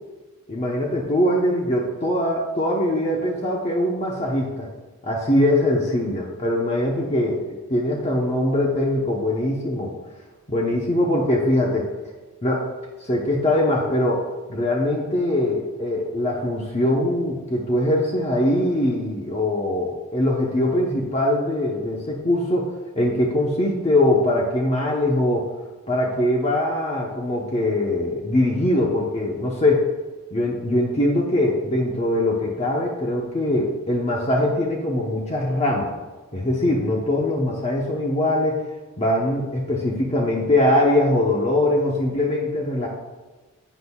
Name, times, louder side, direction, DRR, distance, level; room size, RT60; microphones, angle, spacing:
voice 1, 0.5-4.7 5.0-9.9 10.5-11.9 12.4-12.7 13.0-22.7 22.9-25.5 25.9-29.9 30.3-35.9 36.3-38.6 39.0-42.9, left 1 dB, 30° left, -2 dB, 1.0 m, -22 dB
11.0 x 8.1 x 2.4 m, 1.3 s
head